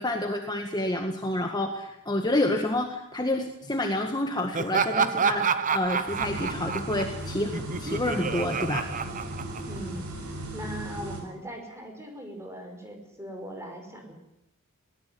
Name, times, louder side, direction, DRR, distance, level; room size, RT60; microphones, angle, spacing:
voice 1, 0.0-8.9, left 1 dB, 20° left, 4 dB, 1.7 m, -29 dB
Laughter, 4.5-10.0, right 5 dB, 35° right, 1.1 m, -29 dB
sound 1, 6.1-11.2, right 1 dB, 85° right, 6.1 m, -37 dB
voice 2, 9.6-14.2, right 1 dB, 10° right, 3 dB, 5.4 m, -40 dB
21.5 x 19.0 x 9.4 m, 0.81 s
head